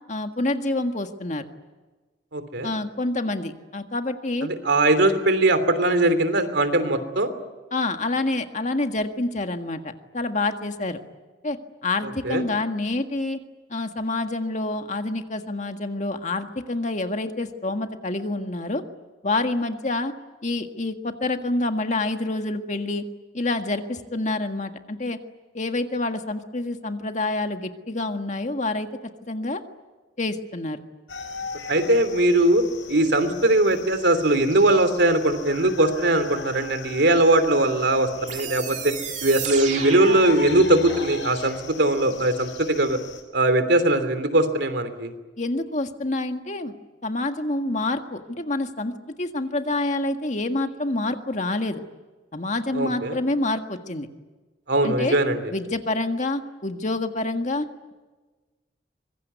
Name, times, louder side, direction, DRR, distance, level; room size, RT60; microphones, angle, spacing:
voice 1, 0.1-1.5 2.6-4.5 7.7-11.0 11.4-13.4 13.7-18.8 19.2-20.1 20.4-23.0 23.3-25.2 25.5-28.9 29.3-29.6 30.2-30.8 45.4-46.7 47.0-51.8 52.3-54.1 54.8-55.2 55.5-57.9, left 2 dB, 40° left, 6 dB, 1.8 m, -27 dB
voice 2, 2.3-2.7 4.4-7.3 12.2-12.4 31.7-38.9 39.2-43.0 43.3-45.1 52.7-53.2 54.7-55.4, right 1 dB, 70° right, 9 dB, 3.1 m, -20 dB
sound 1, 31.1-43.2, left 4 dB, 80° left, 5.9 m, -39 dB
sound 2, 38.3-41.1, right 6 dB, 40° right, 2.7 m, -33 dB
25.0 x 23.0 x 9.5 m, 1.2 s
head